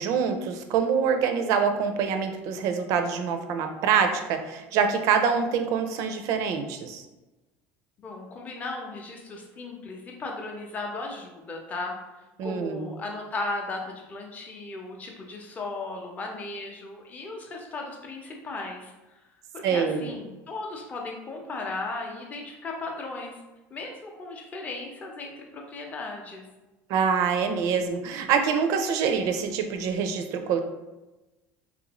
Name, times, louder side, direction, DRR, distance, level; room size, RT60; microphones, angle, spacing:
voice 1, 0.0-7.0 12.4-12.9 19.6-20.1 26.9-30.6, right 6 dB, 60° right, 6 dB, 0.4 m, -25 dB
voice 2, 8.0-12.0 12.4-18.9 19.5-23.4 23.7-26.4, left 3 dB, 25° left, 1 dB, 0.6 m, -36 dB
3.5 x 2.5 x 2.9 m, 1.1 s
cardioid pair, 140°, 6 cm